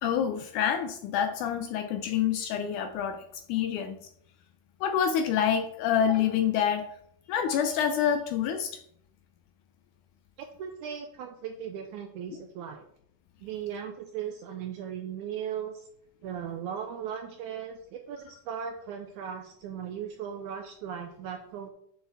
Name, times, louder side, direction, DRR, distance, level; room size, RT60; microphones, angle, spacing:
voice 1, 0.0-4.1 4.8-6.9 7.3-8.8, left 8 dB, 80° left, 8 dB, 1.9 m, -27 dB
voice 2, 10.4-12.8 13.4-15.8 16.2-21.7, right 8 dB, 75° right, 5 dB, 1.9 m, -37 dB
8.7 x 6.5 x 3.5 m, 0.68 s
omnidirectional pair, 3.9 m